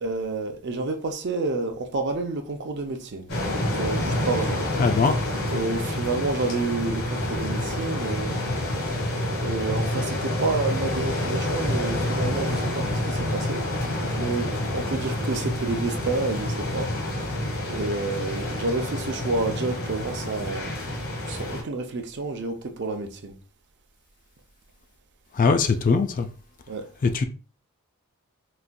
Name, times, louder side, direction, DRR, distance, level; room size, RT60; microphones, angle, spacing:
voice 1, 0.0-3.3 3.7-4.7 5.5-8.4 9.4-13.7 14.2-16.9 17.3-23.4 26.7-26.9, right 3 dB, 50° right, 0.5 m, -29 dB
sound 1, 3.3-21.6, left 1 dB, 75° left, 1.3 m, -28 dB
voice 2, 4.8-5.2 25.3-26.3 27.0-27.2, left 4 dB, 35° left, 0.3 m, -21 dB
4.0 x 2.5 x 2.2 m
head